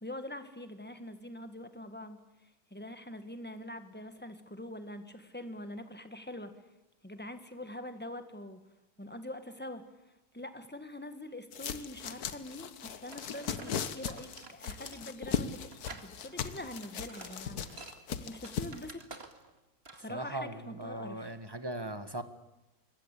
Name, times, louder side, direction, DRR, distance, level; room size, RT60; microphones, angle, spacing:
voice 1, 0.0-6.5 7.0-8.6 9.0-9.8 10.3-17.6 18.2-19.0 19.9-21.4, left 1 dB, 5° left, 9 dB, 1.8 m, -44 dB
sound 1, 11.5-18.9, left 7 dB, 85° left, 1.6 m, -38 dB
sound 2, 13.1-19.6 19.9-20.1, right 3 dB, 40° right, 2.3 m, -50 dB
voice 2, 20.1-22.2, right 1 dB, 15° right, 10 dB, 1.6 m, -39 dB
25.5 x 21.5 x 8.5 m, 0.97 s
omnidirectional pair, 1.6 m